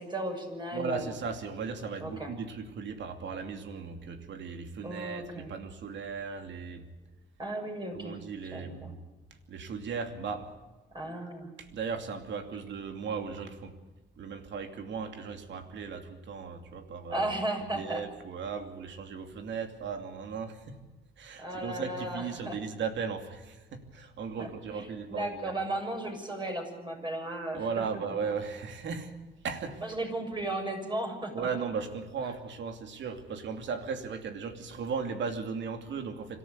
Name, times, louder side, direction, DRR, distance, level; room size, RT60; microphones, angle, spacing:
voice 1, 0.0-1.1 2.0-2.3 4.8-5.5 7.4-8.2 8.5-8.9 10.9-11.5 17.1-18.0 21.4-22.6 24.4-24.5 24.7-27.8 29.8-31.5, right 1 dB, 25° right, 3 dB, 6.9 m, -35 dB
voice 2, 0.7-6.9 7.9-9.0 9.5-10.5 11.6-13.8 14.2-17.3 17.7-20.8 21.2-25.5 27.5-29.1 29.4-29.8 31.3-36.4, right 5 dB, 65° right, 6 dB, 2.7 m, -37 dB
26.0 x 13.5 x 8.1 m, 1.2 s
cardioid pair, 90°, 20 cm